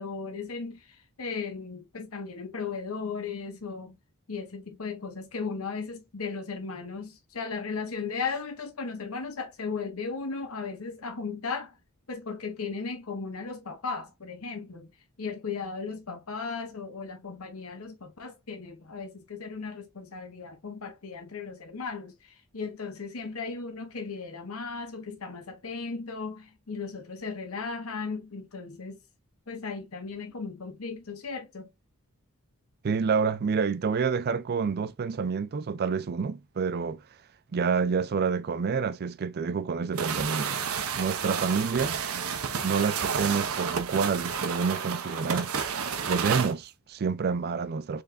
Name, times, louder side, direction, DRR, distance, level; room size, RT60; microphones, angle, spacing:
voice 1, 0.0-4.0 4.3-11.8 12.1-14.9 15.2-29.0 29.5-31.7, left 4 dB, 85° left, 1.0 m, -36 dB
voice 2, 32.8-37.0 37.5-40.7 41.0-42.0 42.6-45.5 46.0-48.0, right 5 dB, 50° right, 0.4 m, -28 dB
sound 1, 40.0-46.5, right 6 dB, 85° right, 0.7 m, -30 dB
4.2 x 3.3 x 2.6 m
head